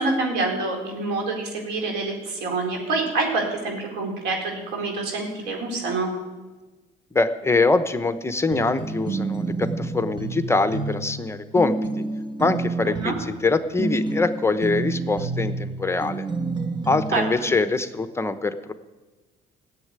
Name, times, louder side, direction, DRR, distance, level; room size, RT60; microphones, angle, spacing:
voice 1, 0.0-6.1 12.8-13.1 17.1-17.5, right 3 dB, 90° right, 1 dB, 4.2 m, -26 dB
voice 2, 7.1-11.7 12.4-16.3 16.9-18.7, left 3 dB, 15° left, 10 dB, 0.8 m, -23 dB
sound 1, 8.5-17.4, right 3 dB, 25° right, 1.2 m, -29 dB
15.5 x 7.5 x 9.6 m, 1.2 s
cardioid pair, 110°, 17 cm